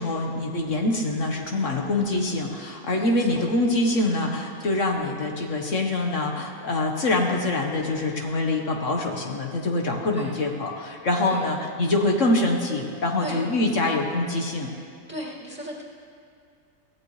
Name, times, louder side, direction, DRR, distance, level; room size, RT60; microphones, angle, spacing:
voice 1, 0.0-14.7, left 2 dB, 65° left, 1 dB, 1.7 m, -25 dB
voice 2, 3.0-3.5 10.1-10.3 11.3-11.5 13.2-13.4 15.1-15.8, equal, 10° right, -5 dB, 2.3 m, -35 dB
23.5 x 16.0 x 3.3 m, 2.4 s
omnidirectional pair, 1.4 m